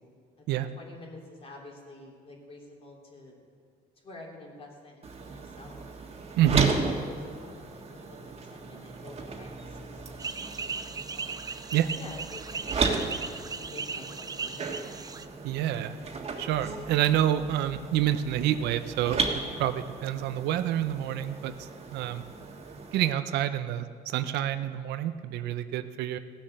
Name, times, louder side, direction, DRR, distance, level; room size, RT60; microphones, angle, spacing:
voice 1, 0.0-3.4 4.0-5.8 6.5-11.3 11.9-13.1 13.5-14.8, left 2 dB, 35° left, -1 dB, 3.2 m, -49 dB
sound 1, 5.0-23.1, right 4 dB, 35° right, 1.6 m, -35 dB
voice 2, 6.4-6.7 11.7-11.9 15.4-15.9 16.4-19.2 19.6-22.2 22.9-26.2, right 11 dB, 80° right, 10 dB, 0.6 m, -27 dB
sound 2, 10.2-15.3, right 4 dB, 20° right, 0.5 m, -37 dB
17.0 x 7.3 x 6.6 m, 2.1 s
cardioid pair, 110°, 17 cm